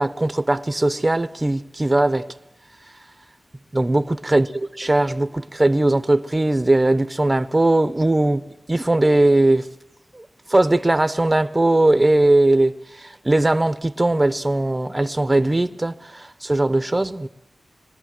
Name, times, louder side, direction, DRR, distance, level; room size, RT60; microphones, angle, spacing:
voice 1, 0.0-2.3 3.7-4.5 4.8-8.4 8.7-9.7 10.1-17.3, right 2 dB, 25° right, 1.2 m, -19 dB
26.0 x 23.0 x 7.8 m
cardioid pair, 60°, 0 cm